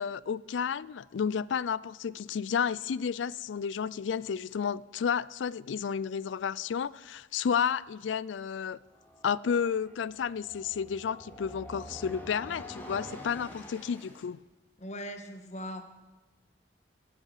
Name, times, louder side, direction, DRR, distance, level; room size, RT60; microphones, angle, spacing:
voice 1, 0.0-8.8 9.2-14.4, left 7 dB, 90° left, 0.4 m, -31 dB
sound 1, 8.8-14.3, equal, 10° left, 2.2 m, -47 dB
voice 2, 14.8-15.8, equal, 40° left, 1.4 m, -39 dB
17.0 x 8.7 x 6.6 m
head